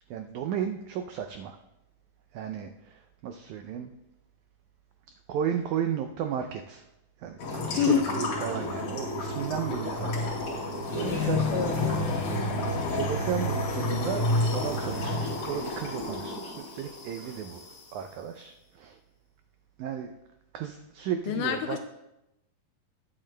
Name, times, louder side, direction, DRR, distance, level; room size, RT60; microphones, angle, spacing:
voice 1, 0.1-1.6 2.3-3.9 5.3-6.8 7.2-11.8 12.4-12.6 12.9-17.6 17.9-19.0 19.8-20.1 20.5-21.8, right 8 dB, 85° right, 5 dB, 1.7 m, -34 dB
sound 1, 7.4-17.8, left 2 dB, 60° left, 4.1 m, -30 dB
voice 2, 7.8-8.4 11.0-12.5 21.3-21.8, left 9 dB, 80° left, 7 dB, 1.9 m, -29 dB
19.5 x 8.8 x 2.2 m, 0.91 s
omnidirectional pair, 4.0 m